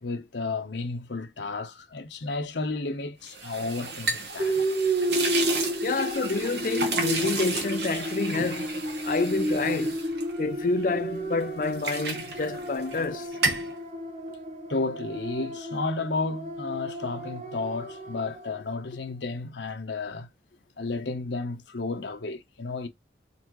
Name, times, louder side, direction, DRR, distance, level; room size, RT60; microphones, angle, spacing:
voice 1, 0.0-4.6 14.7-20.3 20.8-22.9, left 3 dB, 80° left, 0.9 m, -32 dB
sound 1, 3.3-11.0 11.4-13.1 13.3-13.7, right 3 dB, 65° right, 1.2 m, -32 dB
sound 2, 4.4-18.6, right 1 dB, 35° right, 0.9 m, -32 dB
voice 2, 5.8-10.0 10.4-13.3 22.0-22.1, left 3 dB, 45° left, 0.4 m, -28 dB
4.2 x 3.6 x 3.0 m
head